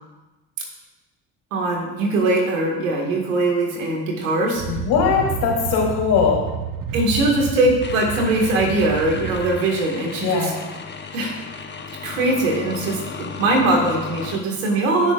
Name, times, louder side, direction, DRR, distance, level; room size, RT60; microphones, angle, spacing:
voice 1, 1.5-4.6 6.9-10.5 11.1-11.3 12.0-15.1, right 2 dB, 90° right, 0 dB, 2.0 m, -21 dB
sound 1, 4.6-9.6, right 6 dB, 60° right, 1.0 m, -30 dB
voice 2, 4.7-6.4 10.2-10.6, left 6 dB, 70° left, -2 dB, 3.3 m, -20 dB
sound 2, 7.8-14.4, left 5 dB, 25° left, 1.1 m, -35 dB
16.0 x 6.5 x 2.5 m, 1.1 s
hypercardioid pair, 60°, 38 cm